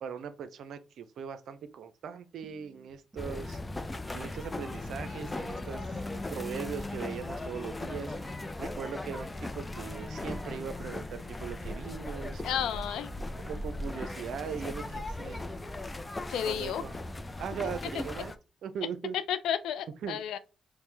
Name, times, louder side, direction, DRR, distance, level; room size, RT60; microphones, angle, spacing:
voice 1, 0.0-3.6 4.1-8.2 8.6-12.4 13.4-15.4 16.4-17.0 17.4-18.3 18.6-19.2 20.0-20.2, right 7 dB, 70° right, 0.5 m, -39 dB
sound 1, 2.4-3.8 4.6-7.8 10.2-11.6 12.3-15.5, right 2 dB, 40° right, 1.1 m, -56 dB
sound 2, 3.2-18.4, left 2 dB, 25° left, 0.4 m, -38 dB
voice 2, 12.4-13.1 16.3-16.8 17.9-18.0 19.1-20.4, left 9 dB, 80° left, 0.4 m, -32 dB
4.3 x 2.1 x 3.2 m
supercardioid pair, 60°, 0 cm